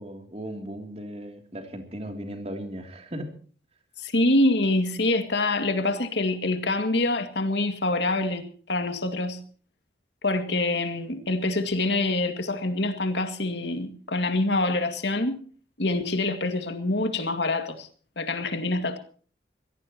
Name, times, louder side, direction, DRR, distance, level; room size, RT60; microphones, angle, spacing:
voice 1, 0.0-3.3, equal, 35° right, 3.0 m, -37 dB
voice 2, 4.0-9.4 10.2-15.4 15.8-17.9 18.2-19.0, left 2 dB, 85° left, 2.2 m, -25 dB
23.5 x 17.0 x 3.0 m
head